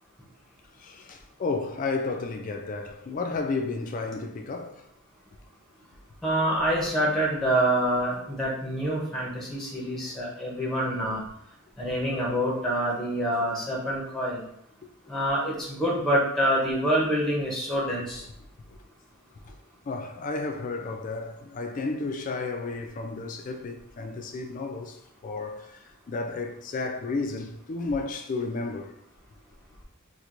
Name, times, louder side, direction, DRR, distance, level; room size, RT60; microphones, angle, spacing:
voice 1, 0.8-4.8 13.8-14.0 15.1-15.2 19.5-19.6 19.9-25.0 25.2-28.9, left 3 dB, 35° left, 0.3 m, -32 dB
voice 2, 6.2-11.2 11.8-14.4 15.1-18.2, right 1 dB, ahead, 0.6 m, -26 dB
4.3 x 2.2 x 2.5 m
head